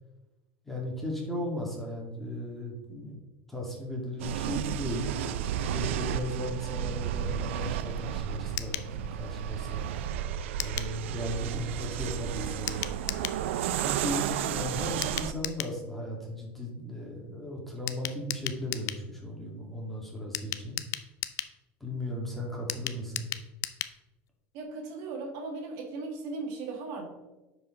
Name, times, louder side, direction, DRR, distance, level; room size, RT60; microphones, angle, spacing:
voice 1, 0.6-3.2 3.5-5.1 5.7-9.9 10.6-12.9 13.8-20.8 21.8-23.3, left 1 dB, 5° left, -2 dB, 2.3 m, -36 dB
sound 1, 4.2-15.3, right 10 dB, 85° right, 0.4 m, -33 dB
sound 2, 8.6-8.9 10.6-10.9 12.7-13.4 15.0-15.8 17.9-19.0 20.3-21.6 22.7-24.0 24.3-24.4 24.6-24.7, left 14 dB, 50° left, 0.5 m, -35 dB
voice 2, 24.5-27.1, right 3 dB, 65° right, 2 dB, 1.6 m, -37 dB
10.0 x 4.9 x 3.8 m, 1.1 s
supercardioid pair, 110°, 6 cm